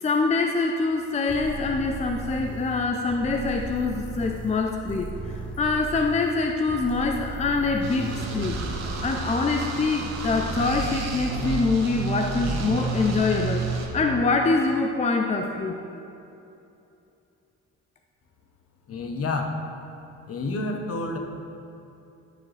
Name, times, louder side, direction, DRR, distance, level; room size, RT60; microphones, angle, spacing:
voice 1, 0.0-8.6 9.0-15.8, left 3 dB, 25° left, 3 dB, 0.5 m, -25 dB
sound 1, 1.3-8.5, right 2 dB, 5° left, 1.0 m, -37 dB
sound 2, 7.8-13.9, right 3 dB, 60° right, 1.4 m, -30 dB
voice 2, 18.9-19.6 20.3-21.2, left 2 dB, 50° left, 3 dB, 1.1 m, -29 dB
13.0 x 6.6 x 3.3 m, 2.8 s
cardioid pair, 90°, 30 cm